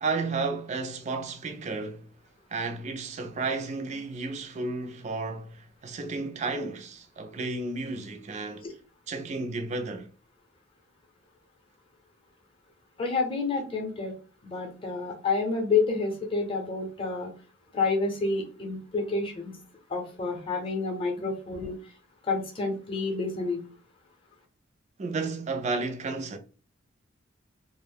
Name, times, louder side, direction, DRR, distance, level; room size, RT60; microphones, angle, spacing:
voice 1, 0.0-2.1 2.5-8.7 9.1-10.1 25.0-26.4, right 3 dB, 35° right, 0.3 m, -32 dB
voice 2, 13.0-14.1 14.4-17.3 17.7-19.5 19.9-21.7 22.3-23.6, left 4 dB, 25° left, 0.6 m, -29 dB
2.5 x 2.0 x 3.3 m
head